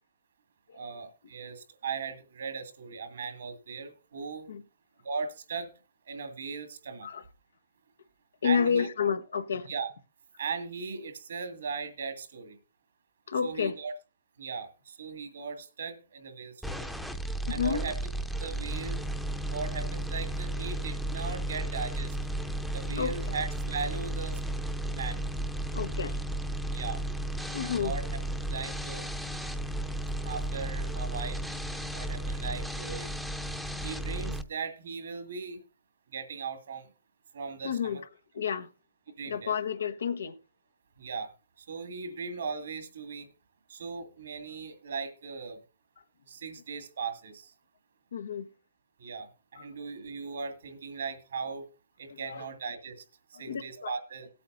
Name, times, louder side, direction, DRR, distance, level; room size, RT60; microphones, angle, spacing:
voice 1, 0.7-4.5 5.0-5.7 6.1-7.1 8.4-8.9 9.7-9.9 10.4-12.6 13.4-13.9 14.4-16.9 17.5-18.0 18.4-19.0 19.4-22.2 22.7-24.4 24.9-25.2 26.7-27.0 27.6-28.0 28.5-29.1 30.2-31.5 31.9-33.1 33.8-35.6 36.1-36.9 37.3-38.0 39.2-39.6 41.0-41.3 41.7-43.3 43.7-45.6 46.3-47.5 49.0-49.3 49.5-51.7 52.0-53.0 53.4-54.3, right 5 dB, 80° right, 2.2 m, -38 dB
voice 2, 8.4-9.7 13.3-13.8 17.5-17.8 23.0-23.3 25.7-26.4 27.5-27.9 37.6-38.0 38.3-38.7 39.2-40.4 48.1-48.5 49.5-49.7 52.1-52.5 53.3-54.0, left 7 dB, 85° left, 1.2 m, -31 dB
sound 1, 16.6-34.4, right 1 dB, ahead, 0.8 m, -34 dB
18.0 x 8.5 x 2.6 m
hypercardioid pair, 140°, 0 cm